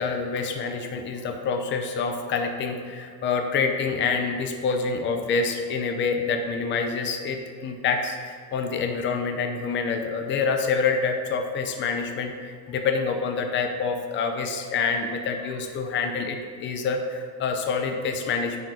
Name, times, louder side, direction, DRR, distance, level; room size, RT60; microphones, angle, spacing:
voice 1, 0.0-18.6, left 5 dB, 25° left, 4 dB, 0.5 m, -27 dB
9.7 x 4.7 x 5.0 m, 2.1 s
cardioid pair, 180°, 44 cm